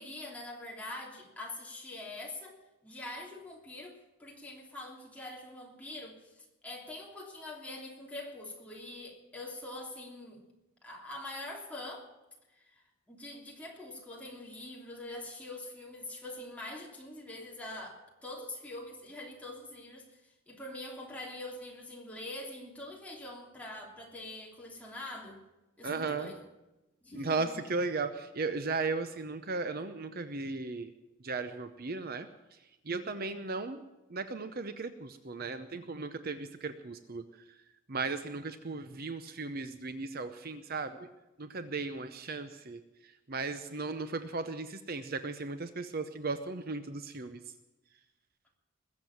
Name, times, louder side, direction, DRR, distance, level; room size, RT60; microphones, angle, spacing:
voice 1, 0.0-2.6 2.8-10.4 10.8-12.1 12.5-25.4 25.8-26.5 27.0-27.6, left 1 dB, 5° left, -2 dB, 3.1 m, -44 dB
voice 2, 25.8-26.3 27.1-30.9 31.2-32.3 32.9-33.8 34.1-37.2 37.9-41.1 41.4-42.8 43.3-47.4, right 3 dB, 45° right, 10 dB, 0.8 m, -36 dB
21.0 x 7.6 x 9.0 m, 1.0 s
head